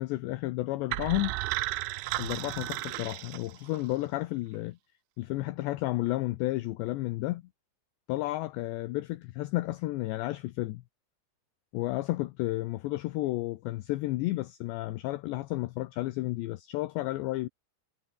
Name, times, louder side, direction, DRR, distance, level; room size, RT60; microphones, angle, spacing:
voice 1, 0.0-1.3 2.2-4.8 5.2-7.4 8.1-10.8 11.7-17.5, left 18 dB, 80° left, 2.6 m, -32 dB
sound 1, 0.9-3.9, right 19 dB, 80° right, 2.7 m, -34 dB
omnidirectional pair, 5.9 m